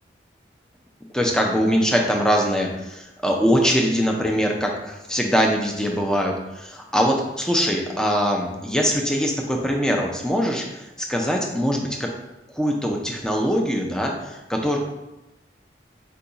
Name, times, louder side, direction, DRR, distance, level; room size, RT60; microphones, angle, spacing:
voice 1, 1.1-12.1 12.5-14.8, equal, 5° left, 0 dB, 0.4 m, -22 dB
4.6 x 2.3 x 3.9 m, 0.98 s
head